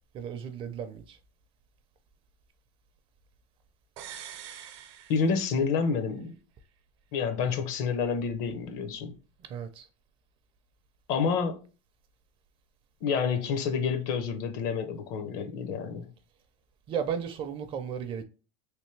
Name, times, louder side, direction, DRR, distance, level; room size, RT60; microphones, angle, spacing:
voice 1, 0.1-1.2 9.5-9.9 16.9-18.2, right 7 dB, 35° right, 0.5 m, -34 dB
sound 1, 4.0-5.9 6.2-6.3, right 10 dB, 70° right, 0.7 m, -45 dB
voice 2, 5.1-6.4 7.1-9.2 11.1-11.6 13.0-16.1, left 5 dB, 55° left, 0.7 m, -29 dB
3.4 x 2.6 x 3.1 m
supercardioid pair, 130°, 15 cm